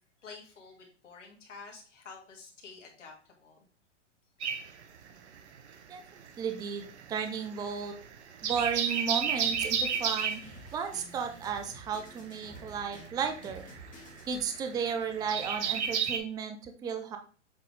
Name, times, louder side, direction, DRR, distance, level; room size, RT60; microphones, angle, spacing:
voice 1, 0.2-3.6, left 4 dB, 75° left, -1 dB, 2.4 m, -49 dB
sound 1, 4.4-5.8 6.1-16.2, right 7 dB, 65° right, 1.0 m, -33 dB
voice 2, 6.4-7.9 8.4-10.4 10.7-13.6 14.3-17.2, right 6 dB, 10° right, 7 dB, 0.5 m, -34 dB
Drum kit, 8.4-14.4, equal, 20° left, 2.1 m, -51 dB
7.6 x 4.6 x 3.5 m, 0.40 s
figure-of-eight pair, 105°, 37 cm